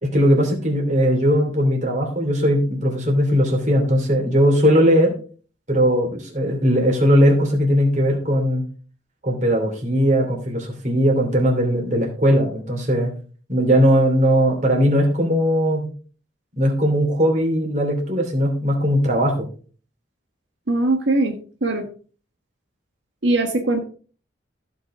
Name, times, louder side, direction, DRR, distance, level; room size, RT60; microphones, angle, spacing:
voice 1, 0.0-5.1 5.7-8.6 9.2-13.1 13.5-15.9 16.6-19.5, equal, 40° right, 2 dB, 2.9 m, -19 dB
voice 2, 20.7-21.9 23.2-23.8, right 2 dB, 75° right, 2 dB, 1.4 m, -21 dB
15.0 x 5.5 x 3.7 m, 0.40 s
head